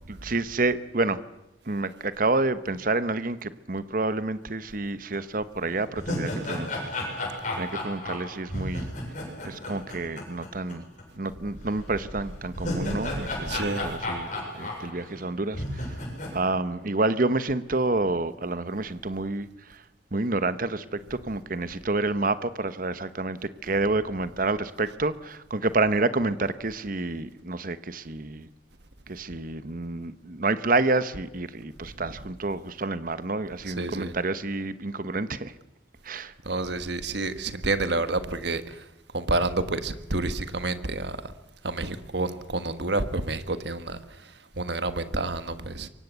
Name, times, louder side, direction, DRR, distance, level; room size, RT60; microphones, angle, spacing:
voice 1, 0.1-1.2 1.7-6.8 7.2-7.3 7.6-8.9 9.4-10.9 11.1-16.0 16.3-19.8 20.1-28.5 29.1-35.5 36.0-36.3, right 2 dB, 45° right, 1.0 m, -28 dB
sound 1, 5.1-5.2 5.7-10.7 11.0-11.1 12.3-15.2 15.5-16.3, left 1 dB, 40° left, 7.8 m, -33 dB
voice 2, 13.4-13.9 24.8-24.9 31.8-32.2 33.6-34.1 36.4-38.9 39.1-41.2 41.6-45.9, right 2 dB, 60° right, 1.5 m, -29 dB
28.0 x 24.0 x 8.2 m
head